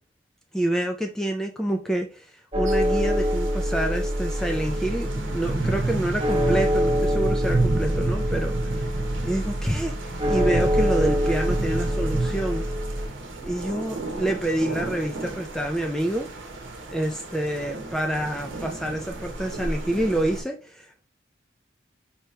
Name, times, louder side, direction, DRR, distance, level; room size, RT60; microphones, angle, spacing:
voice 1, 0.5-9.0 9.2-12.7 13.4-16.3 16.9-21.1, right 1 dB, 5° left, 0.4 m, -28 dB
sound 1, 2.5-13.1, equal, 30° right, 1.2 m, -26 dB
sound 2, 2.7-20.4, right 2 dB, 80° right, 1.0 m, -31 dB
4.7 x 2.8 x 3.2 m
head